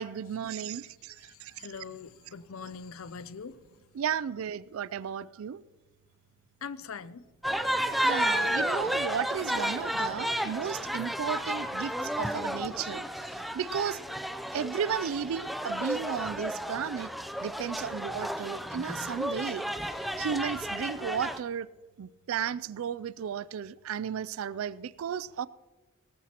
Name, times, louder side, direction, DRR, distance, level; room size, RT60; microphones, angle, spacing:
voice 1, 0.0-1.5 4.0-5.6 8.0-13.0 13.5-14.0 14.5-17.1 17.4-19.6 20.2-21.7 22.0-25.5, right 8 dB, 80° right, 0.3 m, -34 dB
voice 2, 0.9-3.9 6.6-7.3, left 5 dB, 80° left, 0.5 m, -43 dB
sound 1, 7.4-21.4, equal, ahead, 0.4 m, -32 dB
18.0 x 14.0 x 2.9 m
head